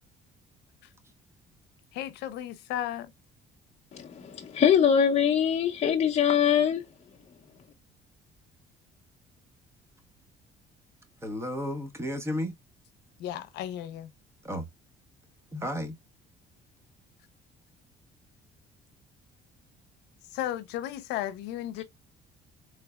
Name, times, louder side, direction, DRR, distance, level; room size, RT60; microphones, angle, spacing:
voice 1, 1.9-3.1 13.2-14.1 20.3-21.8, left 12 dB, 90° left, 0.7 m, -34 dB
voice 2, 3.9-6.8 21.8-21.9, left 8 dB, 40° left, 0.8 m, -23 dB
voice 3, 11.2-12.5 14.4-14.7 15.5-15.9, left 1 dB, 15° right, 1.1 m, -32 dB
3.8 x 3.3 x 2.3 m
cardioid pair, 110°, 17 cm